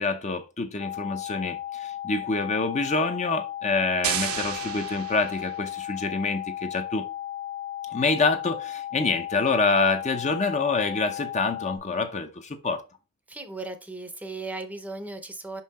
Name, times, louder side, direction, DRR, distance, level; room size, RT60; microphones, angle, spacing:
voice 1, 0.0-7.1 7.9-12.8, left 3 dB, 30° left, 0.7 m, -26 dB
sound 1, 0.8-11.8, left 12 dB, 75° left, 1.6 m, -35 dB
sound 2, 4.0-5.9, right 9 dB, 75° right, 0.9 m, -32 dB
voice 2, 13.3-15.6, right 3 dB, 5° right, 0.7 m, -36 dB
5.6 x 5.5 x 4.1 m
head